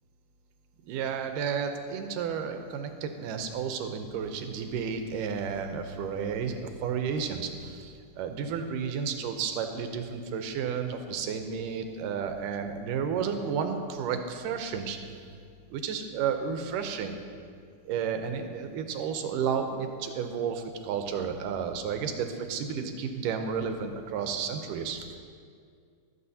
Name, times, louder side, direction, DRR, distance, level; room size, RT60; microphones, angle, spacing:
voice 1, 0.8-15.0 15.7-17.2 17.9-25.1, right 6 dB, 85° right, 6 dB, 2.4 m, -32 dB
23.5 x 8.3 x 2.8 m, 2.2 s
omnidirectional pair, 3.7 m